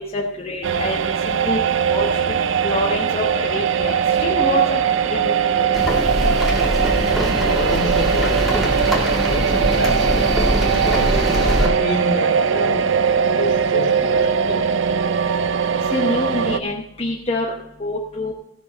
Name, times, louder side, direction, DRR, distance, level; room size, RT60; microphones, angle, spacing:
voice 1, 0.1-1.6 1.9-2.2 2.6-5.8 15.9-17.5 17.8-18.3, left 1 dB, 30° left, -2 dB, 1.0 m, -26 dB
sound 1, 0.6-16.6, right 7 dB, 65° right, 0.5 m, -20 dB
sound 2, 5.7-11.7, equal, ahead, 1.9 m, -22 dB
voice 2, 7.3-9.0 9.3-10.2 10.6-12.9 13.4-14.9, left 1 dB, 55° left, 0 dB, 2.2 m, -28 dB
15.5 x 6.3 x 5.5 m, 0.80 s
head